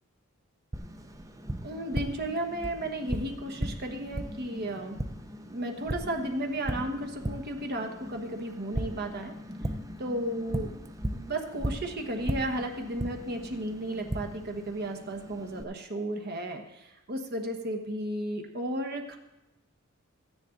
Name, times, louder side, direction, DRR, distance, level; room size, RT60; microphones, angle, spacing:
Tap, 0.7-15.6, right 1 dB, 15° right, 0.5 m, -37 dB
voice 1, 1.6-5.0 5.5-9.3 10.0-10.8 11.1-19.2, right 1 dB, 45° right, 3 dB, 1.2 m, -34 dB
13.0 x 9.8 x 3.9 m, 0.97 s
head